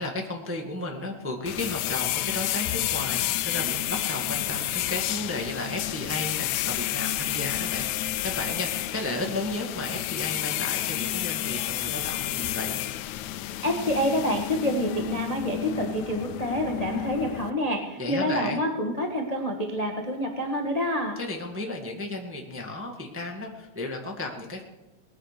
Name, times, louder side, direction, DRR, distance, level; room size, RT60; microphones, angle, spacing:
voice 1, 0.0-12.8 18.0-18.6 21.1-24.6, left 2 dB, 5° right, 1 dB, 1.0 m, -34 dB
sound 1, 1.5-17.5, left 14 dB, 80° left, 1.9 m, -30 dB
voice 2, 13.6-21.2, equal, 20° left, 3 dB, 0.9 m, -27 dB
19.5 x 10.0 x 6.7 m, 1.1 s
omnidirectional pair, 3.4 m